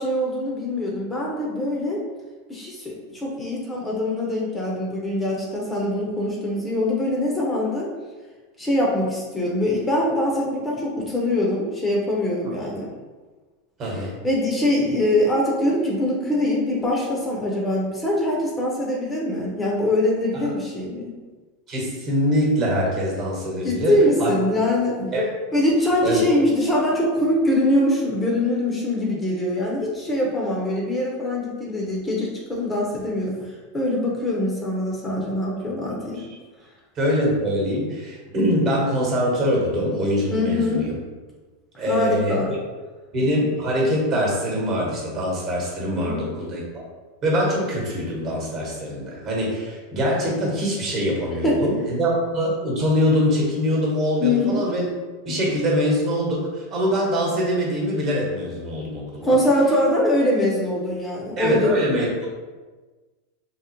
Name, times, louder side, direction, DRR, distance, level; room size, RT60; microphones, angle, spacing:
voice 1, 0.0-2.0 2.5-7.9 8.6-12.9 14.2-21.1 23.6-25.0 25.5-36.2 40.3-40.9 41.9-42.5 45.9-46.3 51.4-51.6 54.2-54.7 59.2-61.7, left 1 dB, 15° left, -3 dB, 0.5 m, -23 dB
voice 2, 13.8-14.1 20.3-20.5 21.7-24.3 25.0-25.2 26.0-26.2 36.1-36.3 36.9-40.9 41.8-42.4 43.1-46.8 47.2-54.9 55.2-59.4 61.4-62.3, equal, 40° right, -3 dB, 1.1 m, -23 dB
3.6 x 2.0 x 2.9 m, 1.3 s
supercardioid pair, 125°, 0 cm